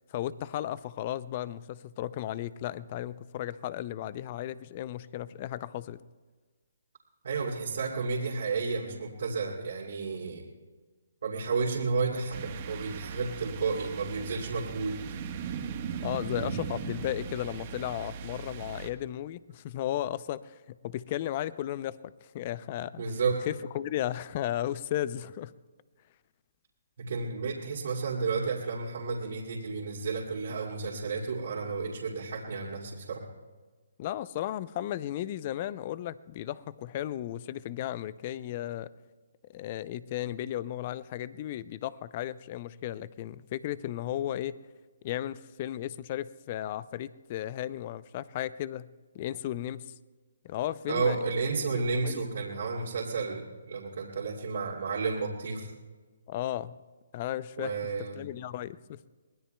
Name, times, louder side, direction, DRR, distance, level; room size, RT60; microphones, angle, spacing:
voice 1, 0.1-6.0 16.0-23.0 23.5-25.5 34.0-38.9 39.5-44.5 45.0-48.9 49.1-49.9 50.4-51.2 51.7-52.2 56.3-56.8 57.1-59.0, left 12 dB, 35° left, 18 dB, 0.4 m, -35 dB
voice 2, 7.2-10.5 11.2-15.0 23.0-23.4 27.0-33.2 50.9-55.7 57.6-58.3, right 4 dB, 65° right, -4 dB, 2.5 m, -32 dB
sound 1, 12.3-18.9, right 6 dB, 40° right, 1.2 m, -38 dB
23.5 x 19.0 x 2.3 m, 1.4 s
hypercardioid pair, 155°, 0 cm